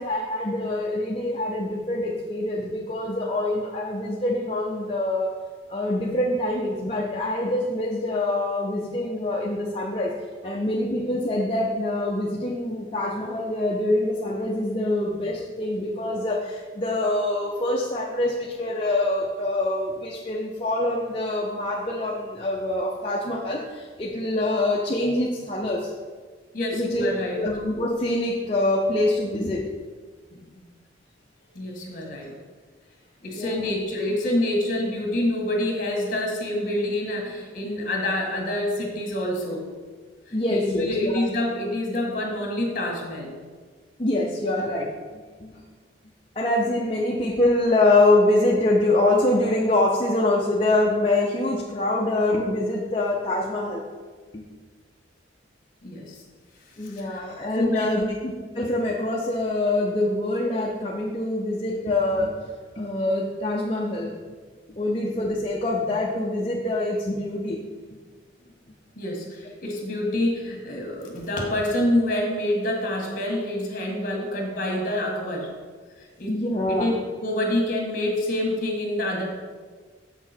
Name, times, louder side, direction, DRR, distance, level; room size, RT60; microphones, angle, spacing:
voice 1, 0.0-5.3 5.7-10.1 10.4-25.9 26.7-27.0 27.4-29.6 33.3-33.6 40.3-41.1 44.0-44.9 45.4-45.6 46.4-53.8 54.3-54.5 56.8-62.4 62.8-64.1 64.7-67.6 76.3-77.0, left 2 dB, 30° left, -2 dB, 0.7 m, -25 dB
voice 2, 26.5-27.4 30.3-30.7 31.5-32.3 33.2-39.7 40.3-43.4 51.8-52.0 55.8-56.2 56.8-57.2 57.6-58.0 69.0-75.5 76.0-76.4 76.7-76.9 77.2-79.2, left 1 dB, 45° left, 0 dB, 1.8 m, -27 dB
7.3 x 6.0 x 4.4 m, 1.5 s
head